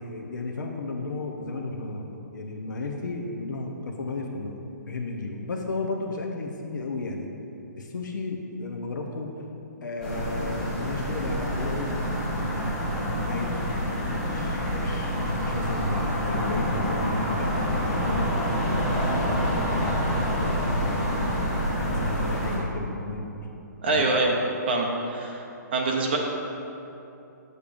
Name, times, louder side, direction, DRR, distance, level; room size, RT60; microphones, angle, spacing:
voice 1, 0.0-4.6 4.9-7.3 7.8-9.3 9.8-11.9 12.3-21.1 21.8-23.4 23.9-24.1, left 2 dB, 85° left, 1 dB, 0.7 m, -33 dB
sound 1, 10.0-22.6, equal, 5° left, 1.2 m, -27 dB
voice 2, 23.8-24.3 24.7-25.5 25.7-26.2, right 2 dB, 35° right, 0 dB, 0.5 m, -24 dB
8.5 x 6.5 x 2.5 m, 2.9 s
hypercardioid pair, 175°, 10 cm